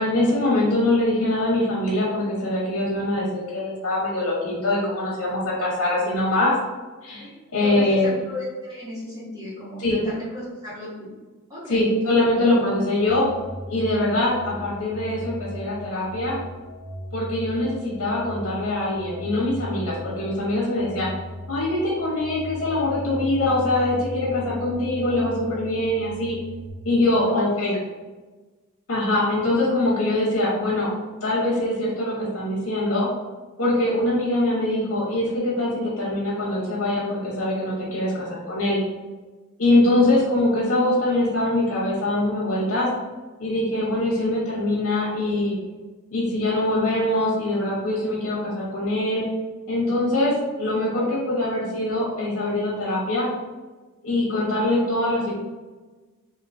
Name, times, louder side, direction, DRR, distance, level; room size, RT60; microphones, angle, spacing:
voice 1, 0.0-6.5 7.0-8.1 9.8-10.0 11.7-13.3 13.7-16.4 17.1-21.1 21.5-26.4 26.8-27.7 28.9-30.9 31.2-33.1 33.6-38.8 39.6-42.9 43.4-45.6 46.1-49.2 49.7-53.3 54.0-55.4, left 1 dB, 70° left, -5 dB, 1.2 m, -23 dB
voice 2, 7.6-11.1 11.5-11.9 27.3-27.5, left 1 dB, 15° right, -10 dB, 1.5 m, -35 dB
sound 1, 13.1-26.7, equal, 25° left, 0.6 m, -37 dB
3.7 x 2.7 x 2.6 m, 1.3 s
head